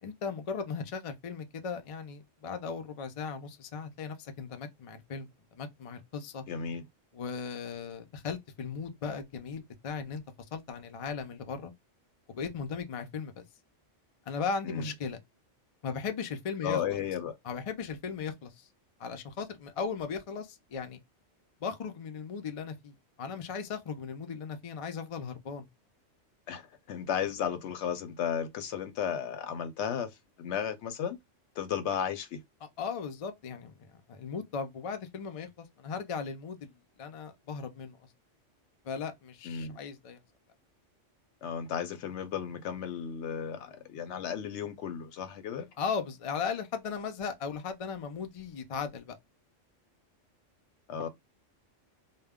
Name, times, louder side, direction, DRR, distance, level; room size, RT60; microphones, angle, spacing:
voice 1, 0.0-6.4 7.1-10.2 10.5-11.7 12.3-13.4 14.3-15.2 15.8-17.0 17.4-18.7 19.0-21.0 21.6-25.7 32.6-36.7 37.0-38.0 38.8-40.2 45.8-49.2, left 5 dB, 55° left, 0.3 m, -37 dB
voice 2, 6.5-6.8 14.6-14.9 16.6-17.4 26.5-31.2 31.6-32.4 39.4-39.8 41.4-45.7 50.9-51.1, left 8 dB, 70° left, 0.8 m, -34 dB
2.2 x 2.1 x 3.4 m
omnidirectional pair, 1.3 m